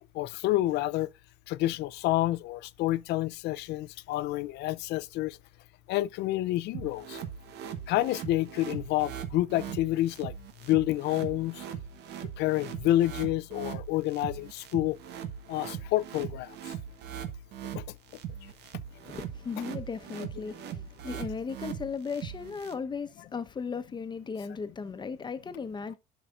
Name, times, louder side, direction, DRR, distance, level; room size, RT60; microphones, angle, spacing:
voice 1, 0.1-1.1 1.5-5.4 5.9-7.2 7.9-10.3 10.7-11.6 12.4-15.0 15.5-16.5 17.7-17.8 20.4-20.5, left 15 dB, 85° left, 0.5 m, -28 dB
sound 1, 6.7-22.7, right 8 dB, 85° right, 1.2 m, -40 dB
voice 2, 19.1-26.0, left 5 dB, 25° left, 1.0 m, -36 dB
11.0 x 5.7 x 2.5 m
cardioid pair, 110°, 17 cm